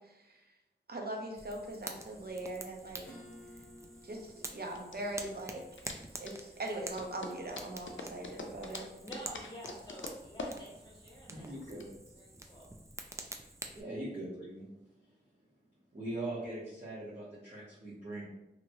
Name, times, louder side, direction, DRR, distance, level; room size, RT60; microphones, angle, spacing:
voice 1, 0.9-3.0 4.0-5.6 6.2-8.9, right 1 dB, 55° right, 1 dB, 0.7 m, -40 dB
Fire, 1.4-13.8, right 2 dB, 15° right, 0.4 m, -48 dB
sound 1, 2.9-11.8, left 2 dB, 85° left, 0.4 m, -46 dB
Acoustic guitar / Strum, 3.0-7.9, left 1 dB, 10° left, 1.4 m, -57 dB
voice 2, 9.0-11.5 12.1-12.7, right 1 dB, 25° left, -3 dB, 1.1 m, -49 dB
voice 3, 11.3-11.9 13.7-14.6 15.9-18.3, right 1 dB, 35° right, -9 dB, 1.0 m, -41 dB
2.9 x 2.9 x 2.7 m, 0.97 s
wide cardioid pair, 45°, 19 cm